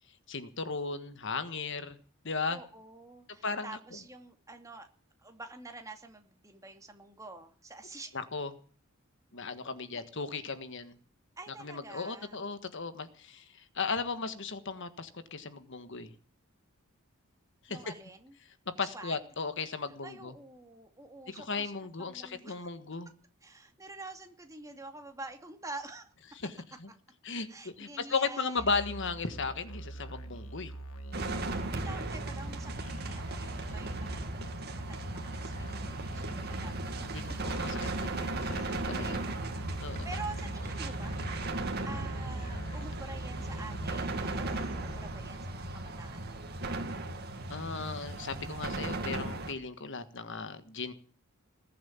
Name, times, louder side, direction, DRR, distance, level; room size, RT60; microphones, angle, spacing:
voice 1, 0.3-2.0 2.2-2.6 3.4-3.8 8.1-8.5 9.3-11.0 11.6-16.1 17.6-17.8 18.8-20.3 21.3-23.1 26.4-26.5 26.8-26.9 27.2-30.7 37.0-39.2 39.8-40.1 47.5-50.9, left 4 dB, 60° left, 11 dB, 1.5 m, -36 dB
voice 2, 2.5-4.9 5.2-8.2 9.9-10.0 11.4-12.4 17.7-18.4 18.9-19.2 20.0-21.7 22.0-22.7 23.4-26.1 27.5-28.6 31.4-37.4 38.5-41.3 41.9-46.7, right 3 dB, 15° right, 5 dB, 2.4 m, -47 dB
Musical instrument, 28.6-45.0, right 2 dB, 80° left, 1.9 m, -43 dB
sound 1, 31.1-49.5, right 2 dB, 50° right, 2.4 m, -37 dB
20.5 x 7.7 x 8.7 m, 0.42 s
head